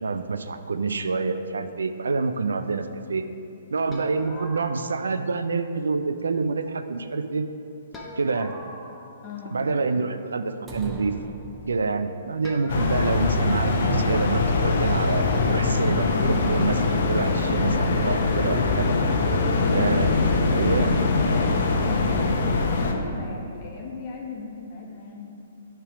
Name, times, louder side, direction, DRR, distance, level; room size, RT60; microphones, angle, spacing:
voice 1, 0.0-3.3 3.7-7.5 8.2-8.5 9.5-11.1 11.7-19.0 19.7-20.1 20.5-21.0, right 4 dB, 90° right, 9 dB, 0.4 m, -27 dB
sound 1, 3.9-5.2 7.9-9.8 12.4-13.2, left 1 dB, 15° left, 0.9 m, -42 dB
voice 2, 9.2-9.7 21.7-22.1 22.7-25.3, left 3 dB, 35° left, -2 dB, 1.3 m, -37 dB
sound 2, 10.7-12.3, right 2 dB, 15° right, 0.7 m, -39 dB
sound 3, 12.7-22.9, left 3 dB, 65° left, 0.7 m, -22 dB
9.0 x 3.4 x 4.9 m, 2.6 s
hypercardioid pair, 145°, 0 cm